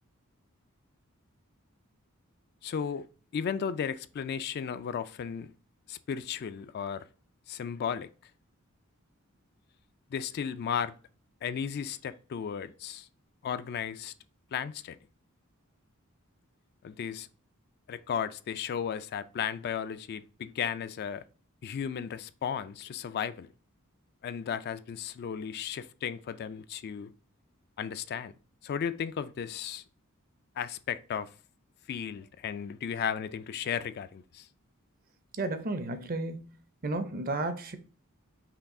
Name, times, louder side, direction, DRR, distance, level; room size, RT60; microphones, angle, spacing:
voice 1, 2.6-3.1 3.3-5.5 5.9-7.0 7.5-8.1 10.1-11.0 11.4-13.1 13.4-14.1 14.5-15.0 16.8-17.3 17.9-21.2 21.6-23.5 24.2-27.1 27.8-28.3 28.6-29.8 30.6-31.3 31.9-34.5, left 7 dB, 45° left, 0.3 m, -35 dB
voice 2, 35.3-36.6 36.8-37.8, right 2 dB, 40° right, 0.6 m, -33 dB
5.7 x 2.3 x 3.6 m
head